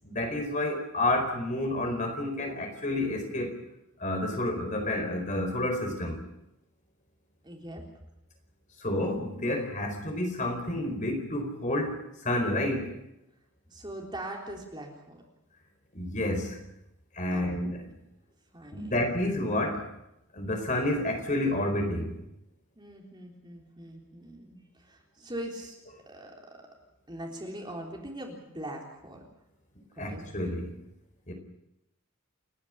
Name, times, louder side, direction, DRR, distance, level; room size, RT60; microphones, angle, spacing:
voice 1, 0.0-3.5 4.0-6.2 8.8-13.0 15.9-16.7 17.1-17.9 18.7-19.9 20.3-22.2 30.0-30.8 31.3-31.4, left 1 dB, 35° left, 4 dB, 4.6 m, -30 dB
voice 2, 7.4-7.9 13.7-15.2 17.3-17.6 18.5-19.0 22.8-25.8 26.1-26.6 27.1-29.2 30.0-30.2, right 1 dB, 20° right, 0 dB, 3.7 m, -41 dB
29.5 x 11.0 x 10.0 m, 0.86 s
head